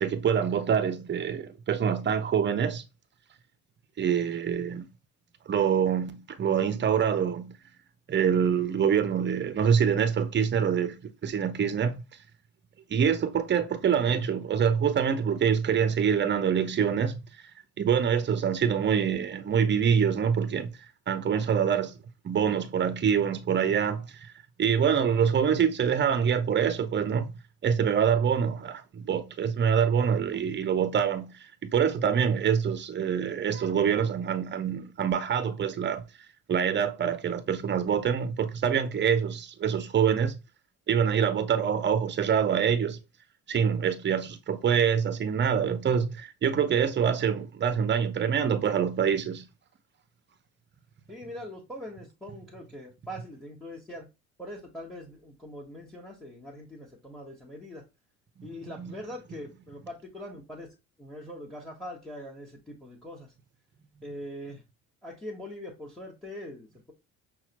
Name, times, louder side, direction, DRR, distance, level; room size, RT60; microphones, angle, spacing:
voice 1, 0.0-2.8 4.0-4.9 5.5-7.6 8.1-12.0 12.9-17.2 17.8-20.8 21.1-21.9 22.2-24.3 24.6-27.3 27.6-36.0 36.5-40.4 40.9-43.0 43.5-49.5 58.4-59.0, right 7 dB, 25° right, 0.6 m, -25 dB
voice 2, 51.1-54.1 54.4-57.8 58.4-60.7 61.0-63.3 64.0-64.6 65.0-66.9, left 1 dB, ahead, 1.4 m, -42 dB
5.6 x 2.3 x 3.0 m
hypercardioid pair, 55°, 42 cm